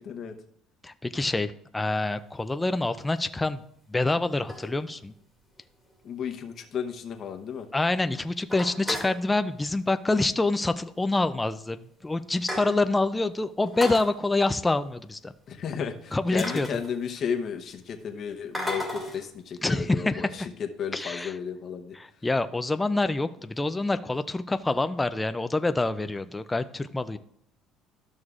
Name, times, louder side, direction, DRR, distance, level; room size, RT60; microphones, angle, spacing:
voice 1, 0.8-3.6 3.9-5.1 7.7-15.3 16.1-16.7 19.6-20.5 20.9-21.4 21.9-27.2, left 2 dB, 10° left, 10 dB, 0.3 m, -26 dB
sound 1, 2.2-2.4 3.2-3.3 4.1-5.2 5.6-5.7 5.9-6.0 6.4-6.5 6.8-6.9 7.2-7.7 8.0-8.1 8.4-9.2 10.3-10.5 10.8-10.9 11.6-11.7 12.0-13.0 13.6-14.1 15.8-15.9 16.4-17.4 18.5-19.3, left 1 dB, 10° right, 2.1 m, -35 dB
voice 2, 6.0-7.7 15.5-20.3 20.8-22.0, left 7 dB, 45° left, 4 dB, 0.8 m, -33 dB
12.5 x 6.3 x 2.4 m, 0.69 s
cardioid pair, 135°, 0 cm